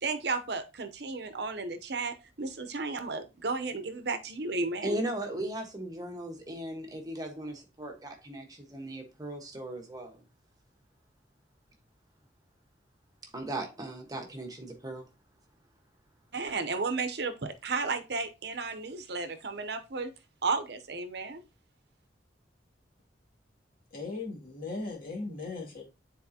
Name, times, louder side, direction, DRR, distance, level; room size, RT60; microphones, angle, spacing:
voice 1, 0.0-5.0 16.3-20.1 20.4-21.4, right 3 dB, 65° right, 0.7 m, -33 dB
voice 2, 4.8-10.2 13.2-15.1, right 1 dB, 20° right, 1.3 m, -37 dB
voice 3, 23.9-25.8, left 3 dB, 50° left, 2.3 m, -38 dB
9.6 x 4.2 x 2.8 m
head